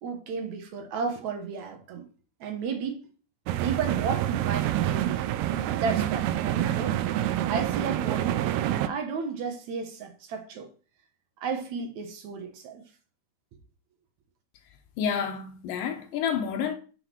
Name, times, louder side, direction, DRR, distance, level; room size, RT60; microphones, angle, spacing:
voice 1, 0.0-2.0 2.4-3.0 3.6-5.4 5.7-7.0 7.4-8.6 8.9-10.7 11.4-12.8, right 5 dB, 60° right, 2.2 m, -33 dB
sound 1, 3.5-8.9, right 12 dB, 85° right, 2.5 m, -27 dB
voice 2, 15.0-16.7, left 7 dB, 75° left, 2.2 m, -29 dB
7.8 x 6.4 x 4.4 m
omnidirectional pair, 4.4 m